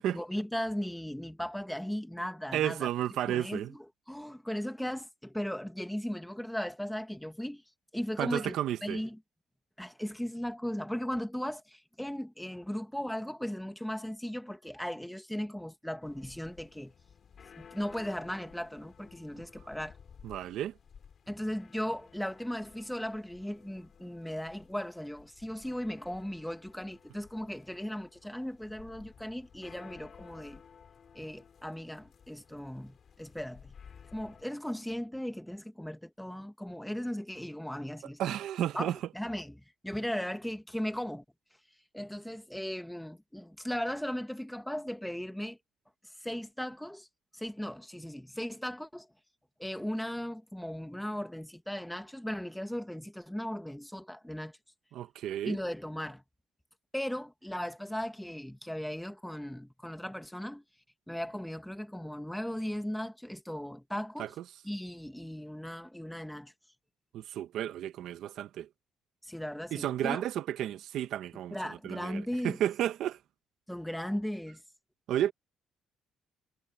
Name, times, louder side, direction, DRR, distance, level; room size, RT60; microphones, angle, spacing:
voice 1, 0.0-2.9 3.3-7.6 7.9-8.6 8.8-9.2 9.8-16.9 17.6-20.0 21.3-30.6 31.1-33.7 34.1-38.3 38.7-41.2 41.9-45.6 46.2-47.1 47.3-49.1 49.6-54.6 55.4-56.2 56.9-60.6 61.1-64.3 64.6-66.5 69.2-70.2 71.5-72.6 73.7-74.6, equal, 5° left, 1.9 m, -37 dB
voice 2, 2.5-3.7 8.2-9.0 20.2-20.7 38.2-39.0 54.9-55.6 64.2-64.3 67.1-68.7 69.7-73.2 75.1-75.3, right 11 dB, 75° right, 1.3 m, -32 dB
sound 1, 16.0-34.4, left 7 dB, 45° left, 4.4 m, -56 dB
cardioid pair, 110°, 0 cm